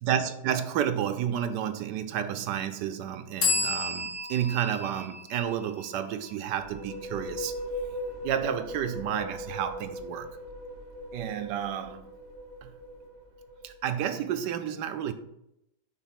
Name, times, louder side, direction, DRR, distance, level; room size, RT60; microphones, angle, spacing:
voice 1, 0.0-7.5 8.2-10.4 11.1-12.0 12.6-12.7 13.6-15.1, right 9 dB, 85° right, 1.2 m, -31 dB
sound 1, 3.4-7.0, left 3 dB, 90° left, 1.7 m, -32 dB
sound 2, 6.4-14.1, equal, 45° right, 1.1 m, -39 dB
5.5 x 3.7 x 5.8 m
omnidirectional pair, 1.8 m